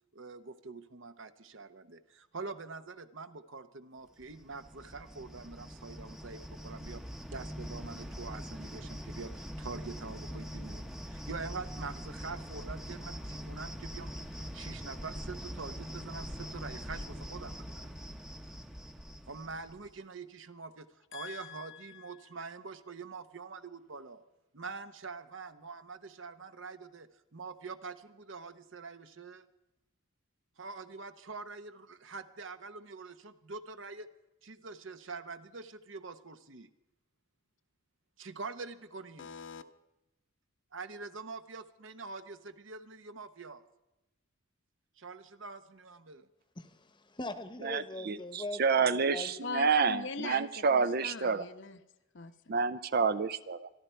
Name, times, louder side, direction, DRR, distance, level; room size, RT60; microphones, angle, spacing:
voice 1, 0.1-7.0 7.3-17.9 19.3-20.9 21.1-24.2 24.5-29.4 30.6-34.1 34.4-36.7 38.2-39.3 40.7-43.6 45.0-46.3, right 4 dB, 60° right, 10 dB, 1.0 m, -45 dB
Cricket, 4.2-19.9, equal, ahead, 0.8 m, -43 dB
voice 2, 21.1-22.3 39.2-39.6 49.4-51.8 52.1-52.5, left 4 dB, 60° left, 8 dB, 1.0 m, -42 dB
voice 3, 46.5-49.4, left 2 dB, 20° left, 10 dB, 1.1 m, -41 dB
voice 4, 47.6-51.4 52.5-53.7, right 5 dB, 45° right, 14 dB, 0.5 m, -29 dB
26.5 x 11.5 x 4.5 m, 0.93 s
head